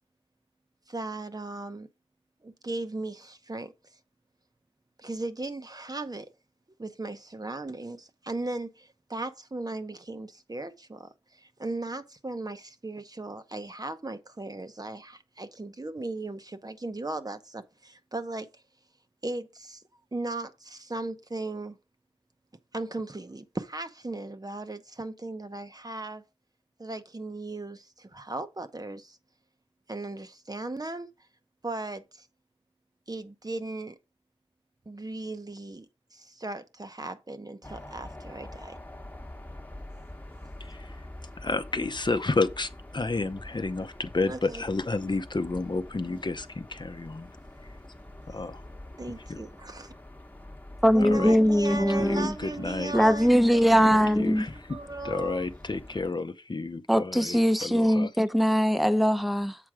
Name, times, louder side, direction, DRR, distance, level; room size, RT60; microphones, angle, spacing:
voice 1, 0.9-1.9 2.4-3.7 5.0-6.3 6.8-18.5 19.2-19.8 20.1-21.8 22.7-26.2 26.8-29.2 29.9-31.1 31.6-32.3 33.1-33.9 34.9-35.9 36.1-38.8 44.3-44.6 49.0-49.9 50.9-53.7 54.7-55.5, right 2 dB, 40° right, 0.8 m, -37 dB
sound 1, 37.6-56.1, left 1 dB, 15° left, 1.1 m, -45 dB
voice 2, 40.6-41.1 41.4-47.3 48.3-48.6 49.3-49.4 51.0-51.4 51.7-52.9 54.2-54.5 55.0-58.1, left 3 dB, 45° left, 0.7 m, -31 dB
voice 3, 50.8-52.3 52.9-54.4 56.9-59.6, equal, ahead, 0.7 m, -21 dB
7.6 x 4.6 x 4.8 m
wide cardioid pair, 50°, 10 cm